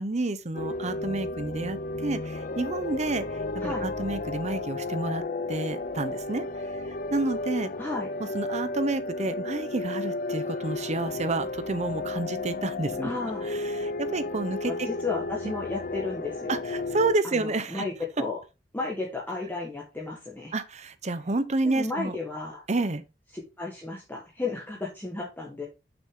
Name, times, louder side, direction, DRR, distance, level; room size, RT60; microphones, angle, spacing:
voice 1, 0.0-5.2 5.5-6.5 6.7-6.8 7.1-7.7 8.2-13.1 13.4-14.9 15.4-15.5 16.5-17.8 20.5-22.2 22.7-23.0, right 2 dB, 40° right, 0.8 m, -30 dB
sound 1, 0.5-17.2, left 2 dB, 50° left, 0.6 m, -33 dB
voice 2, 13.0-13.4 14.6-16.6 17.2-18.4 18.7-20.5 21.6-22.6 23.6-25.7, left 3 dB, 10° left, 1.4 m, -33 dB
6.6 x 6.1 x 3.8 m
head